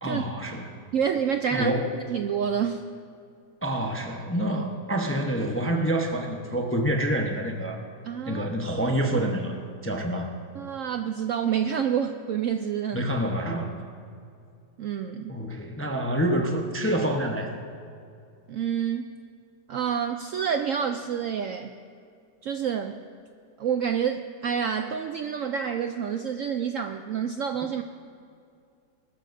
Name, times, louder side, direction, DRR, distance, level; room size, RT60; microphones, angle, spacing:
voice 1, 0.0-0.8 1.5-1.9 3.6-7.8 8.3-9.6 9.8-10.3 12.9-13.8 15.3-17.5, right 1 dB, 15° left, 2 dB, 0.5 m, -27 dB
voice 2, 0.9-1.7 2.1-2.8 8.0-8.5 10.5-13.0 14.8-15.4 18.5-19.1 19.7-21.7 22.4-23.0 23.6-27.8, right 8 dB, 75° right, 6 dB, 0.7 m, -28 dB
20.5 x 13.0 x 2.6 m, 2.4 s
omnidirectional pair, 1.9 m